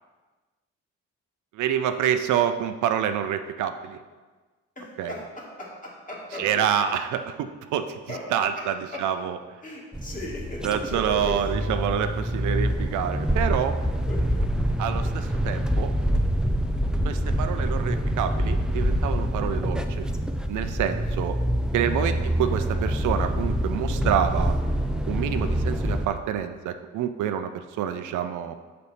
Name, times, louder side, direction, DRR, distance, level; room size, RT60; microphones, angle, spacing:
voice 1, 1.5-4.0 5.0-5.1 6.4-8.0 8.3-9.4 10.6-13.8 14.8-15.9 17.0-20.1 20.5-21.4 21.7-24.6 25.1-28.5, right 9 dB, 75° right, 9 dB, 0.5 m, -27 dB
voice 2, 4.8-6.7 8.1-8.2 8.6-9.0 9.6-11.5 14.1-14.4 15.5-15.6 22.2-22.4, left 1 dB, 25° left, -3 dB, 1.8 m, -37 dB
sound 1, 9.9-26.1, equal, 5° right, 0.3 m, -26 dB
6.7 x 4.2 x 4.1 m, 1.3 s
cardioid pair, 90°, 30 cm